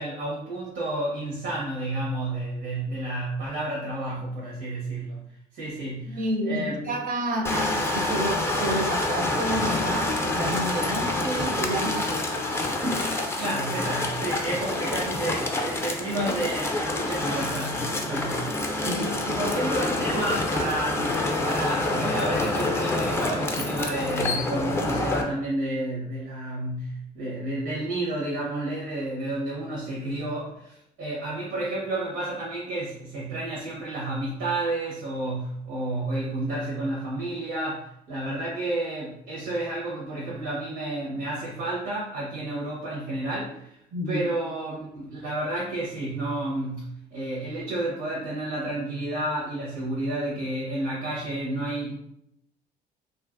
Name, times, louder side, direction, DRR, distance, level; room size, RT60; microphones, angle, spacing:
voice 1, 0.0-5.2 5.5-6.2 6.4-6.9 7.5-7.6 13.4-43.8 44.1-46.9 47.1-51.9, right 1 dB, 85° right, -6 dB, 0.9 m, -31 dB
voice 2, 6.1-13.1 18.8-19.1 43.9-44.3, right 1 dB, 55° right, 3 dB, 0.5 m, -30 dB
sound 1, 7.4-25.2, left 2 dB, 15° left, 0.4 m, -27 dB
2.8 x 2.5 x 2.4 m, 0.74 s
cardioid pair, 110°, 17 cm